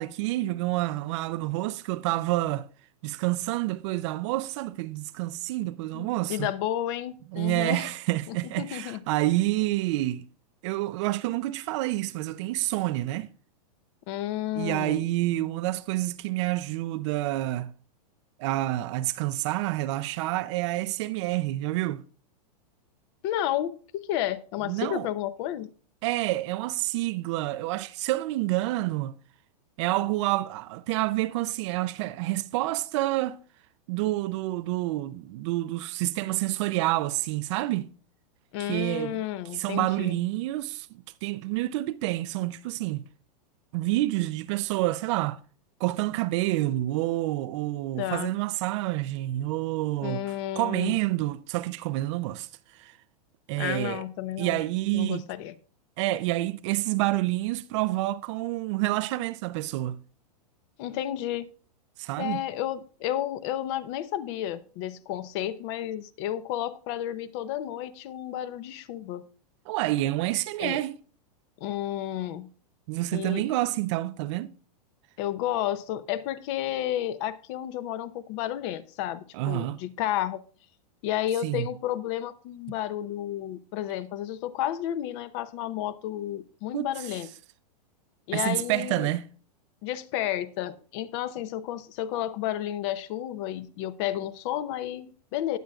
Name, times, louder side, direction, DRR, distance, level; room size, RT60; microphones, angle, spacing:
voice 1, 0.0-2.7 3.0-6.5 7.3-10.3 10.6-13.3 14.6-17.7 18.4-22.0 24.7-25.1 26.0-29.2 29.8-33.4 33.9-37.9 38.7-39.2 39.5-40.9 41.2-43.1 43.7-45.4 45.8-50.2 50.6-52.5 52.8-52.9 53.5-54.0 54.4-55.3 56.0-60.0 62.0-62.4 69.7-71.0 72.9-74.5 79.3-79.8 81.4-81.7 86.7-86.9 88.3-89.3, right 17 dB, 45° right, 0.5 m, -28 dB
voice 2, 5.9-7.8 8.3-9.0 14.1-15.0 23.2-25.7 38.5-40.2 48.0-48.3 50.0-51.0 53.6-54.6 54.9-55.5 60.8-61.5 62.2-69.2 70.6-70.8 71.6-72.5 73.1-73.4 75.2-80.4 81.0-87.3 88.3-89.1 89.8-95.6, left 12 dB, 45° left, 0.7 m, -32 dB
18.5 x 6.2 x 2.4 m
hypercardioid pair, 135°, 21 cm